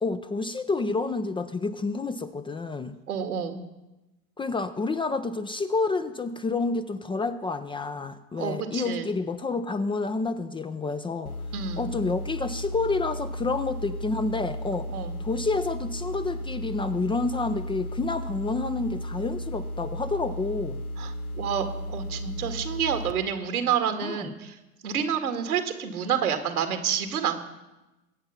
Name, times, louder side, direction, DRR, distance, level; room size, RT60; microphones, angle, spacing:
voice 1, 0.0-3.0 4.4-11.3 11.8-14.9 15.2-20.8 24.0-24.3, left 3 dB, 10° left, 10 dB, 0.5 m, -29 dB
voice 2, 3.1-3.6 8.4-9.1 11.5-11.9 14.9-15.2 21.0-24.6 24.8-27.4, right 8 dB, 80° right, 7 dB, 2.1 m, -29 dB
sound 1, 11.3-23.1, equal, 85° left, 1.0 m, -35 dB
22.0 x 8.8 x 5.7 m, 1.0 s
hypercardioid pair, 95°, 44 cm